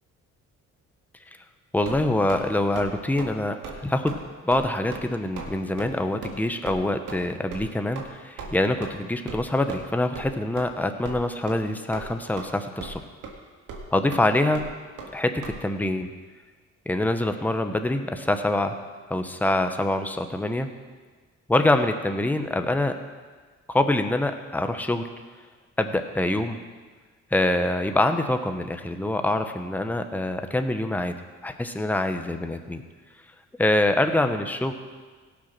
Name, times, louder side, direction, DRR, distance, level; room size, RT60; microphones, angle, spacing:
voice 1, 1.7-4.1 4.4-13.0 13.9-14.6 15.1-16.1 16.9-18.8 19.1-20.7 21.5-22.9 23.7-25.1 25.8-26.6 27.3-31.1 31.4-32.8 33.6-34.7, left 1 dB, 5° left, 7 dB, 0.9 m, -25 dB
sound 1, 1.8-2.4 2.7-2.9 3.2-3.4 3.6-3.8 4.1-4.2 4.5-4.6 4.9-5.1 5.4-5.5 5.8-5.9 6.2-6.4 6.6-6.8 7.1-7.2 7.5-7.6 7.9-8.1 8.4-8.5 8.8-8.9 9.3-9.4 9.7-9.9 10.1-10.3 10.6-10.7 11.0-11.2 11.5-11.6 11.9-12.5 12.8-13.0 13.2-13.3 13.7-13.8 14.1-14.2 14.5-14.7 15.0-15.1 15.4-15.5, right 5 dB, 90° right, 2.0 m, -37 dB
17.0 x 6.1 x 6.0 m, 1.4 s
cardioid pair, 90°, 30 cm